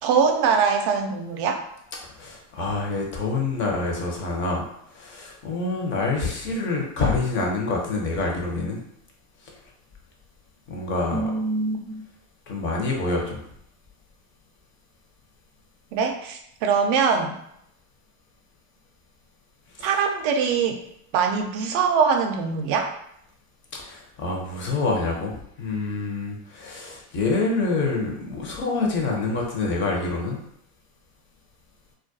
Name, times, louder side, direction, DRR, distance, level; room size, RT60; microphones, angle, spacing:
voice 1, 0.0-1.6 11.1-12.0 15.9-17.3 19.8-20.8 21.1-22.9, right 6 dB, 45° right, 4 dB, 0.4 m, -23 dB
voice 2, 2.2-4.6 5.0-8.8 10.7-11.3 12.5-13.4 19.8-19.9 23.8-30.4, left 3 dB, 25° left, -1 dB, 0.6 m, -26 dB
2.3 x 2.1 x 2.6 m, 0.74 s
hypercardioid pair, 105°, 47 cm